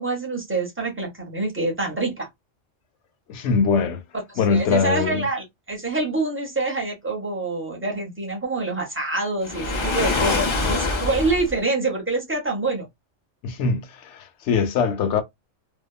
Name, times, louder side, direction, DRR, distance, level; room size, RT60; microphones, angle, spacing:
voice 1, 0.0-2.3 4.5-12.9, right 3 dB, 10° right, 0.8 m, -26 dB
voice 2, 3.3-4.0 4.4-5.2 13.4-15.2, left 5 dB, 70° left, 0.9 m, -22 dB
Waves surf, 9.4-11.5, left 3 dB, 45° left, 0.3 m, -24 dB
2.7 x 2.2 x 2.2 m
omnidirectional pair, 1.3 m